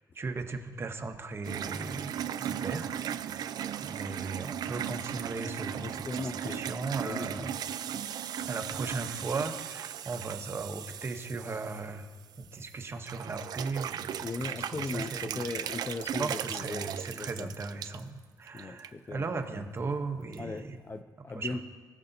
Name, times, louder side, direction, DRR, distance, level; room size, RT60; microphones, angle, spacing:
voice 1, 0.1-3.5 3.8-7.6 8.5-12.1 12.5-15.7 16.2-20.8 21.3-21.6, right 3 dB, 35° right, 6 dB, 0.8 m, -37 dB
sound 1, 1.4-12.7 13.1-18.0 18.5-18.9 19.2-19.3 20.3-20.4, right 9 dB, 65° right, 0.3 m, -37 dB
voice 2, 5.8-6.7 7.0-7.5 14.2-17.5 18.5-19.6 20.4-21.6, left 3 dB, 30° left, 8 dB, 0.4 m, -38 dB
19.5 x 6.7 x 2.7 m, 1.5 s
cardioid pair, 120°, 7 cm